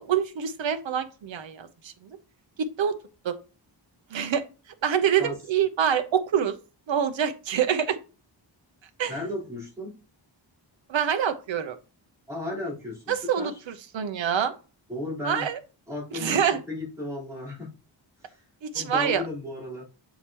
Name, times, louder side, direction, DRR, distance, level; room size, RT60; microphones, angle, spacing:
voice 1, 0.0-2.2 2.6-3.0 3.2-3.4 4.1-4.4 4.8-6.6 6.9-8.0 9.0-9.2 10.9-11.8 13.1-14.5 15.2-15.6 16.1-16.6 18.6-19.2, right 8 dB, 75° right, 9 dB, 0.9 m, -26 dB
voice 2, 9.1-10.0 12.3-13.5 14.9-15.5 15.9-16.4 16.7-17.7 18.2-18.4 18.7-19.8, left 2 dB, 5° right, -7 dB, 3.9 m, -34 dB
7.1 x 4.8 x 2.9 m, 0.33 s
wide cardioid pair, 170°, 46 cm